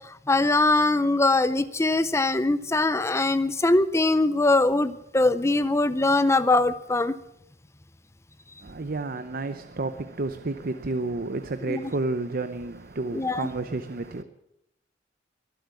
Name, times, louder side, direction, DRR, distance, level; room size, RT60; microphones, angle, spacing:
voice 1, 0.0-7.1 11.7-11.8 13.1-13.5, left 2 dB, 15° left, 0.5 m, -22 dB
voice 2, 8.6-14.2, right 2 dB, 50° right, 0.8 m, -31 dB
22.0 x 7.8 x 8.4 m
head